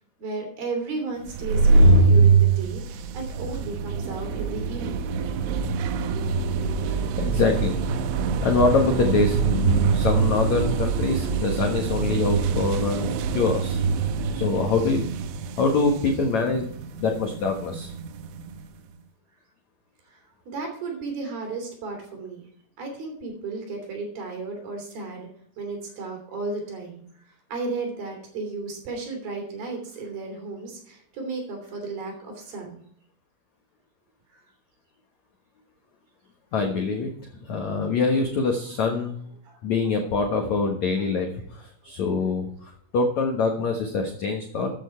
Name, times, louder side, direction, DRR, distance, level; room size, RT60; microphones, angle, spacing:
voice 1, 0.2-5.1 20.1-20.2 20.5-22.5 22.8-25.3 25.6-32.8 34.3-34.4 39.4-39.6 41.0-41.1, right 3 dB, 55° right, 3 dB, 4.6 m, -34 dB
sound 1, 1.3-18.7, right 4 dB, 80° right, 3.3 m, -23 dB
voice 2, 6.9-7.7 8.4-13.8 14.3-15.1 15.6-16.7 17.0-17.9 36.5-37.1 37.4-39.2 39.6-44.7, left 4 dB, 70° left, 2 dB, 1.7 m, -24 dB
14.5 x 9.1 x 4.5 m, 0.63 s
omnidirectional pair, 5.5 m